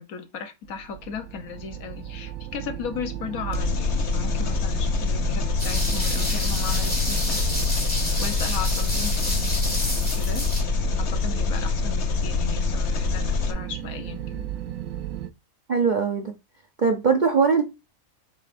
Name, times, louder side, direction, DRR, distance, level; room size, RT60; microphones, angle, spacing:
voice 1, 0.0-7.4 8.2-9.5 10.0-10.5 11.0-14.5, left 6 dB, 85° left, 1.4 m, -36 dB
sound 1, 0.6-15.3, right 11 dB, 80° right, 1.0 m, -34 dB
Engine, 3.5-13.5, left 5 dB, 60° left, 1.1 m, -25 dB
sound 2, 5.6-10.6, equal, 5° left, 2.2 m, -30 dB
voice 2, 15.7-16.3 16.8-17.6, right 5 dB, 45° right, 0.7 m, -21 dB
7.0 x 5.3 x 2.5 m
omnidirectional pair, 1.4 m